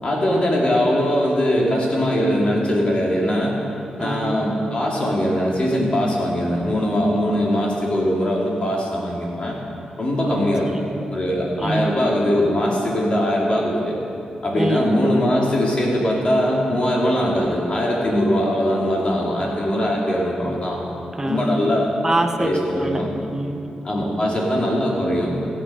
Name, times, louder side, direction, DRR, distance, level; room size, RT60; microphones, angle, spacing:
voice 1, 0.0-3.6 4.0-9.6 10.0-10.7 11.1-14.0 14.4-20.8 21.2-22.1 22.4-23.2 23.8-25.4, equal, 40° left, -3 dB, 2.7 m, -21 dB
voice 2, 4.0-4.4 10.3-11.1 11.6-12.0 14.6-14.9 21.2-21.7 22.0-23.0 23.2-23.7, right 2 dB, 15° right, 4 dB, 0.8 m, -26 dB
16.0 x 7.6 x 5.6 m, 2.6 s
cardioid pair, 85°, 3 cm